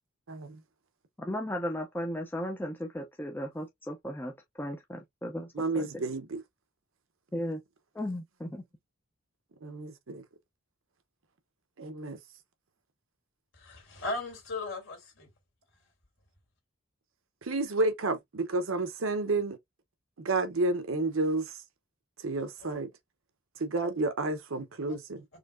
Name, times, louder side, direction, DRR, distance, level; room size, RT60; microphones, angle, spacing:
voice 1, 0.3-0.6 5.5-6.4 9.6-10.2 11.8-12.2 17.4-19.6 20.2-21.5 22.2-22.9 23.6-25.2, right 2 dB, 70° right, 0.8 m, -30 dB
voice 2, 1.2-5.9 7.3-7.6 7.9-8.6, equal, 10° left, 0.4 m, -36 dB
voice 3, 13.5-15.3 22.6-22.8 24.9-25.0, left 2 dB, 65° left, 2.4 m, -37 dB
4.2 x 2.8 x 2.4 m
head